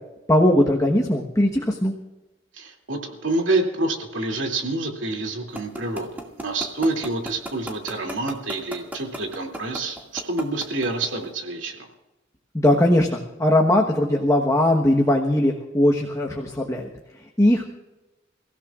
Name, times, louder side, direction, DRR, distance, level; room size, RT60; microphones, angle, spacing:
voice 1, 0.3-1.9 12.5-16.9 17.4-17.6, left 1 dB, 15° left, 0 dB, 1.2 m, -19 dB
voice 2, 2.5-11.8, right 2 dB, 75° right, 1 dB, 2.8 m, -27 dB
sound 1, 5.5-11.3, right 1 dB, 10° right, 2.1 m, -33 dB
29.5 x 16.0 x 2.5 m, 1.1 s
head